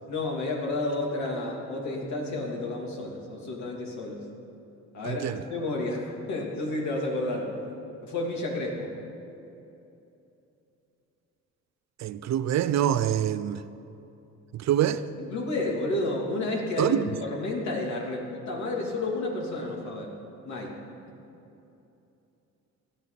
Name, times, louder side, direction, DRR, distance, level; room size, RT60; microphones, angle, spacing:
voice 1, 0.1-4.2 4.9-7.5 8.0-8.9 15.2-20.1 20.5-20.8, left 2 dB, 65° left, 3.0 m, -31 dB
voice 2, 5.0-5.4 12.0-13.6 14.5-15.1 16.8-17.1, right 11 dB, 65° right, 0.6 m, -25 dB
18.5 x 12.5 x 4.2 m
cardioid pair, 90°, 30 cm